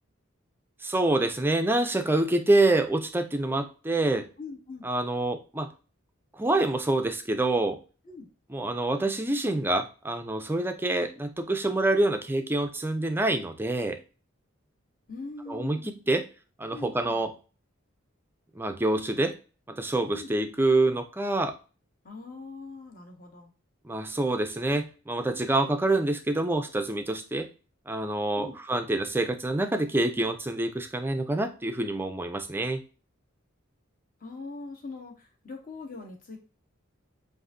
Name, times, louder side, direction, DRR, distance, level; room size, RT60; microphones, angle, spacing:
voice 1, 0.8-4.3 4.8-5.7 6.4-7.8 8.5-14.0 15.5-16.3 16.6-17.3 18.6-19.4 19.7-21.5 23.8-27.5 27.9-32.8, right 2 dB, 10° right, 7 dB, 0.4 m, -26 dB
voice 2, 4.4-4.9 8.0-8.3 15.1-16.0 16.7-17.2 20.1-20.3 22.0-23.5 28.4-28.5 34.2-36.4, left 3 dB, 40° left, 2 dB, 1.1 m, -42 dB
7.6 x 2.6 x 2.5 m, 0.34 s
head